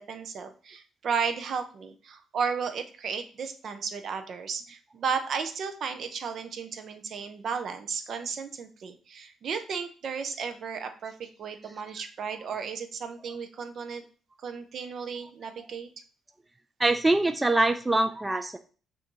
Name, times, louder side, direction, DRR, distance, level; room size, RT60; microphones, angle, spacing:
voice 1, 0.0-14.0 14.4-15.9, right 6 dB, 60° right, 8 dB, 0.6 m, -34 dB
voice 2, 16.8-18.6, right 2 dB, 15° right, 8 dB, 0.3 m, -24 dB
5.6 x 2.6 x 3.1 m, 0.39 s
cardioid pair, 90°, 0 cm